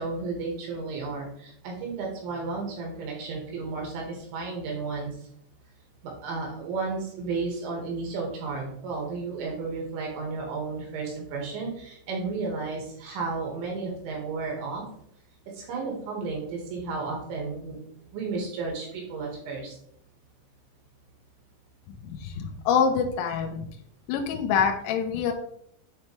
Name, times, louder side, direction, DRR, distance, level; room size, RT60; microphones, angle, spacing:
voice 1, 0.0-5.3 6.0-14.8 15.5-17.8 18.1-19.8, right 4 dB, 70° right, 0 dB, 3.6 m, -33 dB
voice 2, 21.9-23.7 24.1-25.3, left 6 dB, 85° left, 3 dB, 2.8 m, -26 dB
9.3 x 4.3 x 3.2 m, 0.68 s
omnidirectional pair, 5.8 m